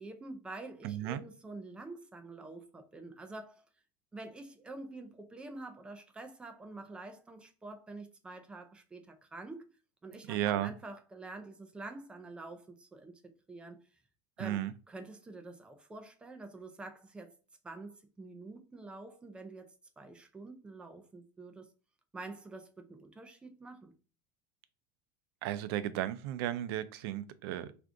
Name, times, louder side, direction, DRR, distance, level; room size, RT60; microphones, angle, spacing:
voice 1, 0.0-3.6 4.1-9.7 10.0-13.8 14.4-17.4 17.6-21.7 22.1-23.9, right 2 dB, 10° right, 0.3 m, -47 dB
voice 2, 0.8-1.2 10.3-10.7 14.4-14.7 25.4-27.7, right 12 dB, 85° right, 0.4 m, -34 dB
4.4 x 2.5 x 2.4 m
cardioid pair, 175°, 12 cm